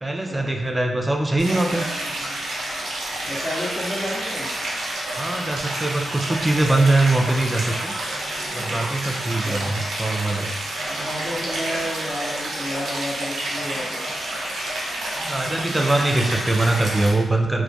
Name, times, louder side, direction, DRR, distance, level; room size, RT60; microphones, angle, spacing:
voice 1, 0.0-1.8 5.2-7.9 8.5-10.5 15.3-17.6, right 2 dB, 25° right, 2 dB, 0.4 m, -22 dB
Stream, 1.4-17.1, right 1 dB, 90° right, 0.4 m, -29 dB
voice 2, 3.2-4.5 9.4-9.7 10.9-14.0, equal, 50° left, -10 dB, 0.7 m, -31 dB
2.2 x 2.2 x 2.6 m, 1.0 s
supercardioid pair, 40°, 0 cm